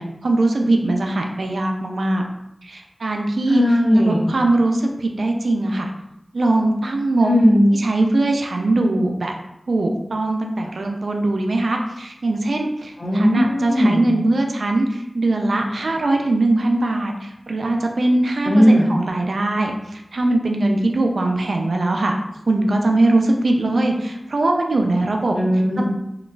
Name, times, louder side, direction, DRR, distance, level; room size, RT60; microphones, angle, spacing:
voice 1, 0.0-2.2 2.6-3.6 4.0-5.9 6.3-7.3 7.7-9.3 9.7-22.2 22.5-25.4 25.8-25.9, right 2 dB, 90° right, 2 dB, 0.4 m, -21 dB
voice 2, 3.5-4.3 7.2-7.7 13.0-14.1 18.4-18.9 25.3-25.8, equal, 60° left, -6 dB, 0.9 m, -17 dB
3.8 x 3.0 x 2.3 m, 0.86 s
wide cardioid pair, 45°, 0 cm